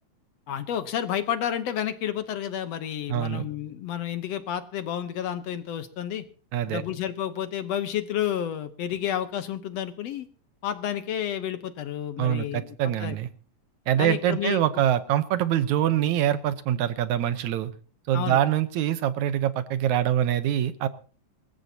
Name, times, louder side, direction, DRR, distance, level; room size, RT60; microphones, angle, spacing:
voice 1, 0.5-6.2 6.7-10.3 10.6-12.7 13.0-13.2 14.0-14.6 18.1-18.4, left 10 dB, 65° left, 10 dB, 1.9 m, -30 dB
voice 2, 3.1-3.5 6.5-6.8 12.2-13.3 13.9-17.7 18.1-20.9, right 11 dB, 75° right, 12 dB, 2.2 m, -24 dB
26.0 x 14.5 x 2.8 m, 0.39 s
omnidirectional pair, 3.5 m